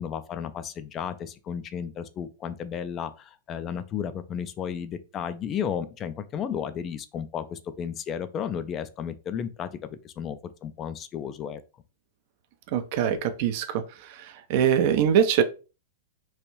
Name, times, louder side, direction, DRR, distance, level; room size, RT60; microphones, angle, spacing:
voice 1, 0.0-9.7 10.0-11.6, left 8 dB, 30° left, 0.3 m, -33 dB
voice 2, 12.7-15.4, right 8 dB, 50° right, 0.5 m, -23 dB
3.1 x 2.5 x 2.9 m
figure-of-eight pair, 100°, 0 cm